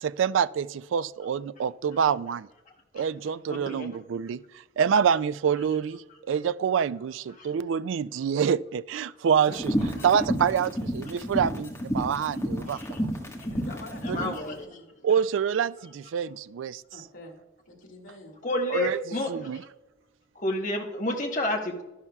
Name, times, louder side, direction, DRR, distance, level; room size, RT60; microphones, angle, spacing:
voice 1, 0.0-2.5 2.9-4.4 4.8-9.7 10.0-13.1 14.1-14.4 15.0-16.8 18.7-19.0 19.3-19.6, right 7 dB, 85° right, 0.3 m, -26 dB
voice 2, 3.5-3.9 7.4-7.5 9.5-9.6 10.0-10.1 12.7-13.0 14.0-14.6 18.4-19.6 20.3-21.8, left 1 dB, 40° left, 1.1 m, -30 dB
sound 1, 9.5-14.3, equal, 15° left, 1.5 m, -30 dB
voice 3, 10.3-10.6 12.2-12.4 13.4-14.9 16.9-17.4 17.7-18.4, left 1 dB, 80° left, 2.4 m, -45 dB
12.0 x 11.0 x 2.3 m
head